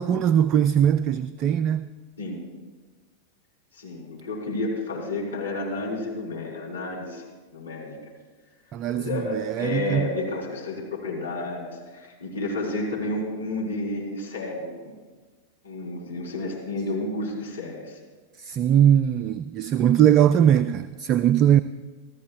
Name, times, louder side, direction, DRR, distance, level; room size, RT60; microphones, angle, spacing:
voice 1, 0.0-1.9 8.7-10.1 18.4-21.6, right 10 dB, 35° right, 0.4 m, -20 dB
voice 2, 3.7-7.2 7.5-8.0 8.9-14.9 15.6-18.0, left 2 dB, 75° left, 3.9 m, -31 dB
25.5 x 14.0 x 2.4 m
figure-of-eight pair, 90°, 0 cm